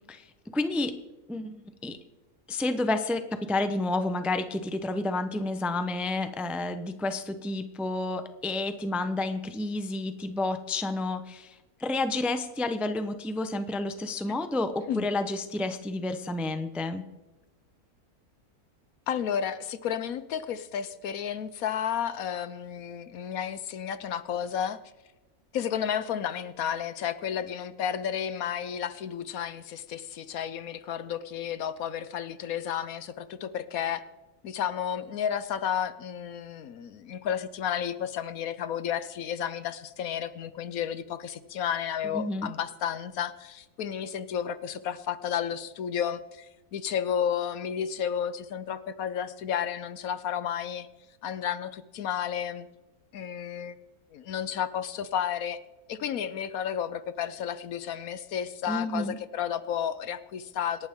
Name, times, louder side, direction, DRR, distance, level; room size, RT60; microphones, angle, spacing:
voice 1, 0.5-1.0 1.3-2.0 2.5-3.2 3.5-17.1 42.1-42.5 58.7-59.2, left 2 dB, ahead, 9 dB, 0.5 m, -30 dB
voice 2, 19.1-24.8 25.5-34.0 34.4-50.9 51.2-52.7 53.1-53.8 54.1-55.6 55.9-60.9, left 8 dB, 70° left, 13 dB, 1.2 m, -32 dB
27.0 x 11.5 x 3.7 m, 1.1 s
omnidirectional pair, 1.6 m